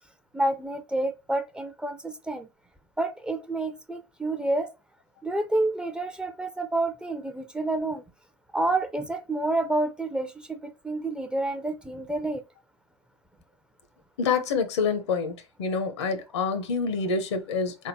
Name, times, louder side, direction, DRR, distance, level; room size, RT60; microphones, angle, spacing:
voice 1, 0.3-2.5 3.0-4.7 5.2-8.0 8.5-12.4, right 2 dB, 5° right, 0.5 m, -29 dB
voice 2, 14.2-15.3 15.6-17.9, left 5 dB, 70° left, 0.9 m, -27 dB
3.8 x 3.6 x 2.7 m
figure-of-eight pair, 80°, 15 cm